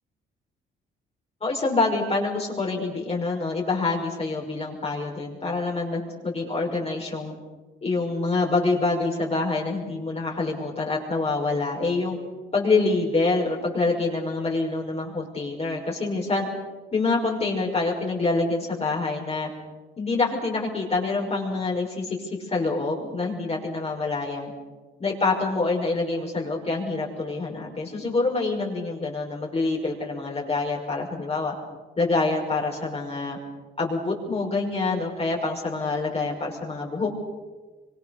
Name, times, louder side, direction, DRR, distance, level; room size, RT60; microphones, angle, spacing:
voice 1, 1.4-7.3 7.8-12.2 12.5-16.5 16.9-19.5 20.0-24.5 25.0-31.5 32.0-33.4 33.8-37.1, left 3 dB, 30° left, -2 dB, 5.7 m, -26 dB
25.0 x 24.5 x 6.7 m, 1.3 s
cardioid pair, 90°, 20 cm